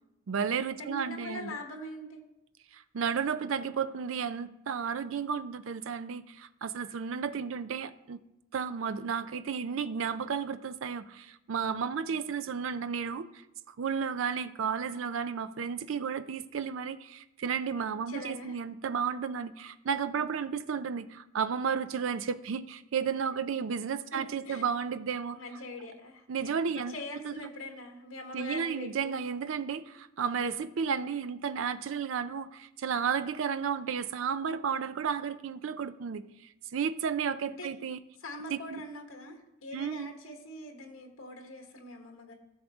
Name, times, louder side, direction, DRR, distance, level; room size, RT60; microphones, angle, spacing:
voice 1, 0.3-1.6 2.7-8.2 8.5-25.4 26.3-26.9 27.3-27.5 28.3-38.0 38.5-38.8 39.7-40.1, right 6 dB, 65° right, 13 dB, 0.4 m, -33 dB
voice 2, 0.8-2.2 18.1-18.6 24.1-24.7 25.3-29.2 37.5-37.7 38.2-42.3, left 1 dB, 70° left, 3 dB, 1.4 m, -43 dB
14.0 x 6.4 x 3.5 m, 0.90 s
head